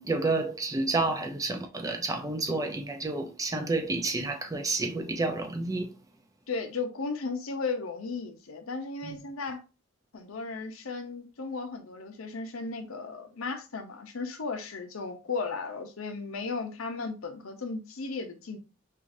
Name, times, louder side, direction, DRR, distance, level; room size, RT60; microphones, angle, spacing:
voice 1, 0.0-5.9 9.0-9.2, right 3 dB, 15° right, 0.4 m, -30 dB
voice 2, 6.5-9.6 10.1-18.6, left 4 dB, 85° left, 0.7 m, -35 dB
4.6 x 2.4 x 2.6 m
head